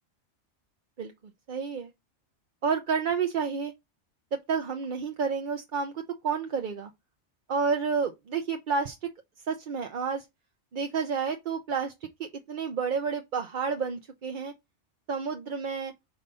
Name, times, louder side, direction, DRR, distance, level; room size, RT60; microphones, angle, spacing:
voice 1, 1.5-1.9 2.6-3.7 4.3-6.9 7.5-9.1 9.5-10.2 10.7-11.9 12.2-14.5 15.1-15.9, right 5 dB, 50° right, 0.8 m, -30 dB
5.4 x 4.0 x 5.4 m
omnidirectional pair, 1.2 m